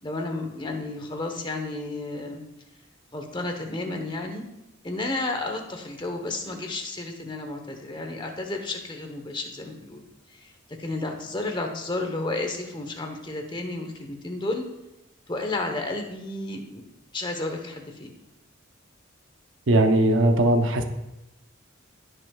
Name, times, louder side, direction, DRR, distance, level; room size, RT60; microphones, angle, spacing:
voice 1, 0.0-2.4 3.1-4.4 4.8-10.1 10.3-10.5 10.8-14.6 15.3-16.8 17.1-18.1, left 2 dB, 25° left, 3 dB, 1.0 m, -32 dB
voice 2, 19.7-20.8, right 1 dB, 65° right, 6 dB, 0.8 m, -19 dB
15.0 x 6.4 x 2.4 m, 0.94 s
head